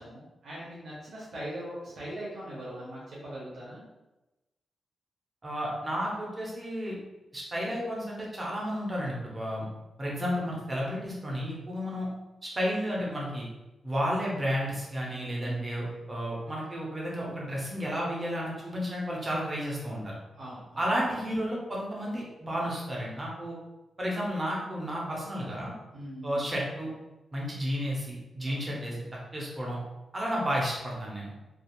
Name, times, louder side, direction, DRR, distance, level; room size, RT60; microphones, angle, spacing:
voice 1, 0.0-3.8 15.1-16.0 20.4-20.9 25.9-26.4 28.4-28.8, right 1 dB, 70° right, -7 dB, 0.8 m, -41 dB
voice 2, 5.4-7.0 7.3-9.7 10.0-12.1 12.4-13.5 13.8-20.1 20.8-23.6 24.0-25.7 26.2-26.9 27.3-29.0 29.3-29.8 30.1-31.3, equal, 20° right, -4 dB, 0.6 m, -32 dB
2.4 x 2.4 x 2.9 m, 1.1 s
wide cardioid pair, 175°, 0 cm